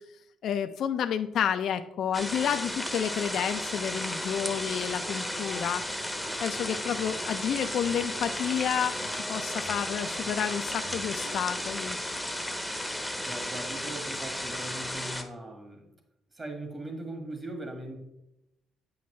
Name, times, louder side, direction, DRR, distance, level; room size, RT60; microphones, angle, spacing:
voice 1, 0.4-5.9 6.4-9.0 9.3-12.0, left 8 dB, 70° left, 9 dB, 0.4 m, -30 dB
sound 1, 2.1-15.2, left 1 dB, ahead, 0.9 m, -34 dB
sound 2, 4.7-11.6, equal, 60° right, 2.8 m, -49 dB
voice 2, 13.3-15.8 16.3-18.0, right 2 dB, 30° right, 4 dB, 1.8 m, -40 dB
8.5 x 5.8 x 3.1 m, 0.86 s
cardioid pair, 90°, 0 cm